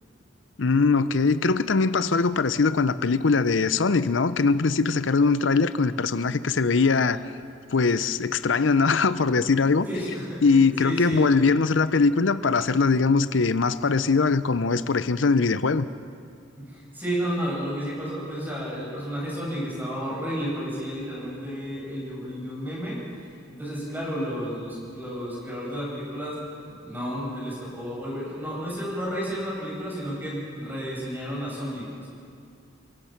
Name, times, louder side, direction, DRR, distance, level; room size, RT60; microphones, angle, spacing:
voice 1, 0.6-7.2 7.7-9.9 10.4-15.9, left 4 dB, 75° left, 14 dB, 0.7 m, -21 dB
voice 2, 9.8-11.3 16.6-23.0 23.5-26.4 26.8-32.1, equal, 10° right, -5 dB, 7.7 m, -32 dB
30.0 x 16.5 x 6.0 m, 2.3 s
head